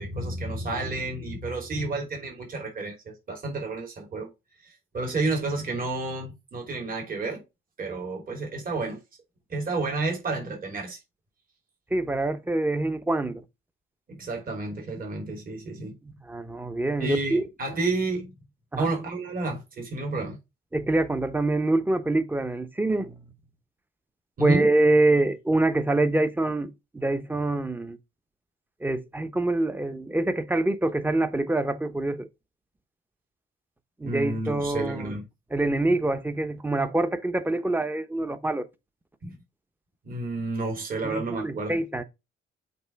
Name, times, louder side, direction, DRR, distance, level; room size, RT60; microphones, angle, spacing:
voice 1, 0.0-4.3 4.6-7.4 7.8-9.0 9.5-11.0 14.1-16.0 17.0-18.3 18.8-20.4 24.4-24.7 34.0-35.2 39.2-39.3 40.0-41.8, right 2 dB, 45° right, 3.0 m, -31 dB
voice 2, 11.9-13.4 16.0-17.5 18.7-18.9 20.7-23.2 24.4-28.0 28.8-32.3 34.0-35.2 35.5-38.7 41.0-42.0, right 2 dB, 10° right, 0.9 m, -25 dB
8.0 x 3.3 x 4.5 m
cardioid pair, 90°, 20 cm